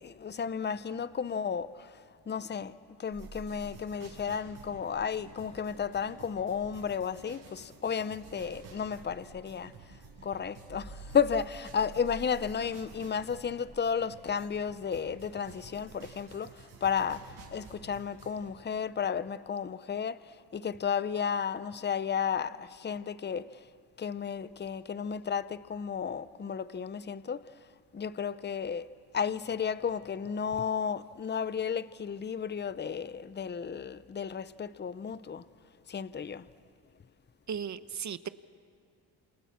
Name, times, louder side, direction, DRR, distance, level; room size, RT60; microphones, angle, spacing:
voice 1, 0.0-2.0 2.3-9.7 10.2-23.5 24.0-27.4 27.9-28.9 29.1-35.4 35.9-36.4, left 7 dB, 25° left, 0.8 m, -33 dB
sound 1, 3.1-18.5, right 3 dB, 70° right, 6.7 m, -50 dB
voice 2, 37.5-38.3, right 7 dB, 45° right, 1.0 m, -36 dB
28.0 x 28.0 x 7.3 m
cardioid pair, 85°, 40 cm